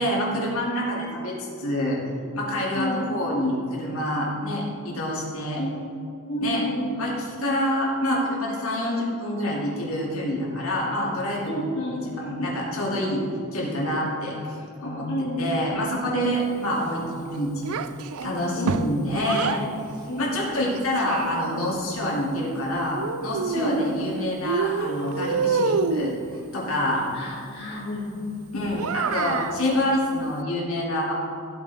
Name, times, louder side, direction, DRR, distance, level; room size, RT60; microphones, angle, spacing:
voice 1, 0.0-2.0 2.3-5.6 6.4-6.6 7.0-13.2 13.5-17.8 18.2-19.7 20.2-26.1 26.5-27.0 28.5-31.1, left 1 dB, 70° left, -5 dB, 2.7 m, -27 dB
voice 2, 2.8-3.1 5.6-5.7 6.3-6.9 11.4-12.1 15.1-15.8 18.6-18.8 20.0-20.3 23.5-23.8 27.1-28.3, equal, 50° left, -6 dB, 2.4 m, -30 dB
Child speech kid speaking, 17.6-19.6 20.5-21.8 22.9-24.1 24.4-26.2 28.7-29.6, right 5 dB, 80° right, 0.5 m, -27 dB
15.0 x 8.8 x 3.6 m, 2.7 s
head